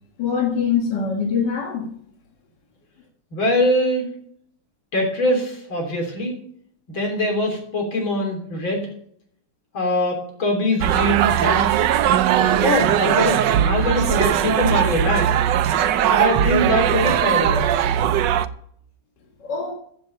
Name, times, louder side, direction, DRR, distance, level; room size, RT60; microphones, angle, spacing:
voice 1, 0.2-1.9 19.4-19.7, left 6 dB, 65° left, 2.3 m, -23 dB
voice 2, 3.3-4.1 4.9-6.4 6.9-8.9 9.7-11.7 12.4-15.4 16.1-17.7, left 1 dB, 90° left, 4.1 m, -23 dB
sound 1, 10.8-18.5, right 10 dB, 70° right, 1.3 m, -19 dB
15.0 x 7.8 x 5.5 m
omnidirectional pair, 2.1 m